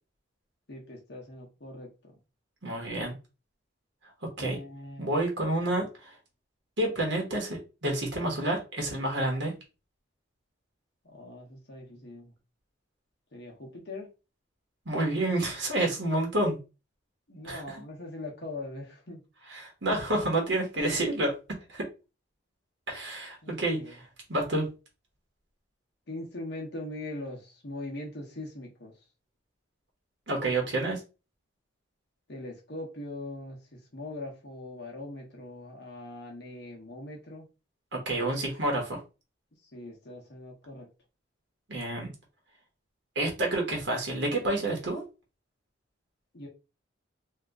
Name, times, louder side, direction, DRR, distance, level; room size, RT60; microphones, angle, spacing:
voice 1, 0.7-2.1 4.4-5.2 11.0-12.3 13.3-14.1 17.3-19.2 23.4-23.9 26.1-28.9 32.3-37.5 39.7-40.9 46.3-46.5, left 2 dB, 55° left, 0.8 m, -41 dB
voice 2, 2.6-3.1 4.4-4.6 5.0-6.2 6.8-9.5 14.9-16.6 17.4-17.8 19.5-21.3 21.7-21.9 22.9-24.0 24.3-24.6 30.3-31.0 37.9-39.0 41.7-42.1 43.1-45.0, right 1 dB, 65° right, 1.1 m, -29 dB
2.8 x 2.4 x 3.5 m
head